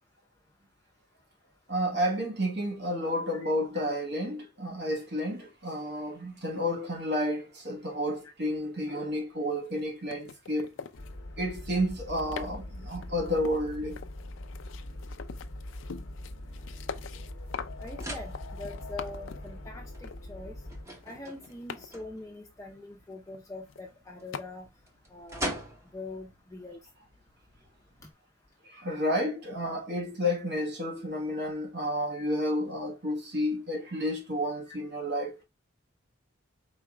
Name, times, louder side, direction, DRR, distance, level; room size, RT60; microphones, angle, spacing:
voice 1, 1.7-10.7 11.4-14.0 28.6-35.4, equal, 55° right, 1.2 m, -31 dB
voice 2, 3.4-3.8 17.8-20.6 21.0-24.7 25.1-25.6 25.9-26.8 32.1-32.3 34.7-34.8, left 2 dB, 15° left, 0.6 m, -43 dB
sound 1, 9.6-9.8 10.1-11.2 11.9-12.6 12.9-19.5 20.0-20.2 21.0-21.9 23.3-23.4 23.7-23.9 24.3-24.4, left 6 dB, 65° left, 0.4 m, -43 dB
sound 2, 10.9-20.8, left 1 dB, 85° left, 0.8 m, -42 dB
sound 3, 15.2-28.1, right 1 dB, 15° right, 0.8 m, -45 dB
4.7 x 3.9 x 2.3 m
head